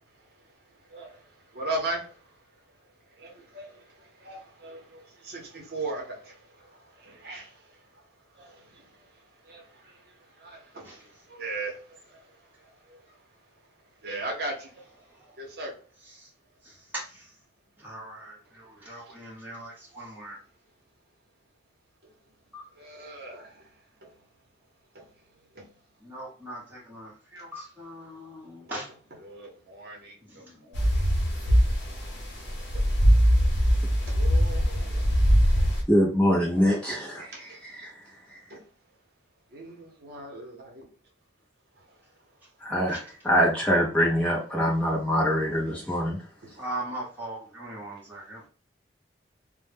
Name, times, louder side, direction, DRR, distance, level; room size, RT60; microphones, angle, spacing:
voice 1, 1.5-2.1 3.2-6.4 7.0-7.5 8.4-8.8 9.4-9.6 10.4-11.0 11.3-12.0 12.9-13.0 14.0-14.7 15.4-15.7 19.1-19.2 22.8-23.5 24.9-25.0 25.6-25.7 29.2-30.2 30.6-30.9 31.4-31.5 31.9-32.0 34.0-35.0 37.3-37.6 38.5-38.6 39.5-40.9, right 2 dB, 55° right, 0.7 m, -37 dB
voice 2, 15.0-15.3 16.0-16.3 16.6-17.3 17.8-20.4 22.5-22.6 26.0-28.9 30.2-30.8 42.9-43.0 46.6-48.4, right 1 dB, 10° right, 0.9 m, -40 dB
sound 1, 30.7-35.8, equal, 75° left, 0.8 m, -22 dB
voice 3, 35.9-37.9 42.6-43.0 43.2-46.2, equal, 5° left, 0.5 m, -24 dB
2.1 x 2.1 x 3.2 m
head